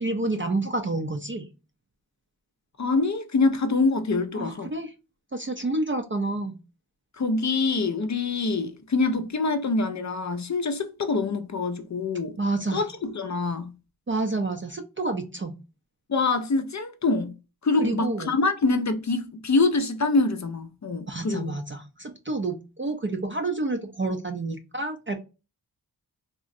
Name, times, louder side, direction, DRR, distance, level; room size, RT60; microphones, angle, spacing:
voice 1, 0.0-1.5 4.3-4.9 5.3-6.6 12.4-12.9 14.1-15.5 17.8-18.3 21.1-25.2, right 2 dB, 30° right, 0.4 m, -29 dB
voice 2, 2.8-4.7 7.2-12.4 12.7-13.7 16.1-17.3 17.6-21.6, left 3 dB, 45° left, 0.4 m, -25 dB
3.6 x 2.1 x 2.5 m
wide cardioid pair, 70°, 40 cm